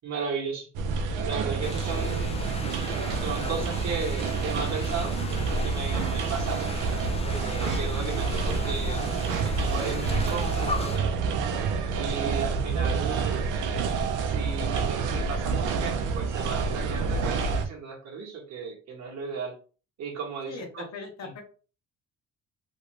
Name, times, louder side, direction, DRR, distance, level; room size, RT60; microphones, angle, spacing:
voice 1, 0.0-0.7 1.2-2.5 3.2-5.2 5.5-6.8 7.2-9.0 9.4-11.1 12.0-13.5 14.2-19.5 20.0-21.3, right 5 dB, 60° right, 0 dB, 1.1 m, -35 dB
sound 1, 0.7-17.7, right 4 dB, 85° right, 0.5 m, -28 dB
sound 2, 1.6-11.0, left 3 dB, 20° left, 0.4 m, -37 dB
voice 2, 20.9-21.4, left 5 dB, 60° left, 3 dB, 0.9 m, -39 dB
2.6 x 2.5 x 3.1 m, 0.37 s
cardioid pair, 90°, 30 cm